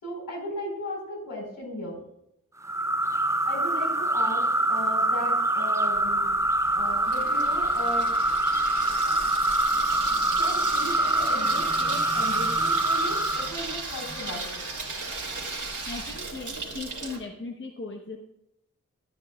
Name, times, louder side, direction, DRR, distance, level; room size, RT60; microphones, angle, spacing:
voice 1, 0.0-2.0 3.5-6.3 6.7-8.1 10.4-14.6, left 1 dB, 80° left, -2 dB, 4.3 m, -36 dB
sound 1, 2.6-13.5, right 1 dB, 10° right, 0.6 m, -25 dB
Water tap faucet / Sink (filling or washing), 6.0-17.2, right 3 dB, 65° right, 2.8 m, -36 dB
voice 2, 15.8-18.2, left 3 dB, 35° left, 2 dB, 0.9 m, -38 dB
13.5 x 9.8 x 2.3 m, 0.79 s
wide cardioid pair, 120°, 32 cm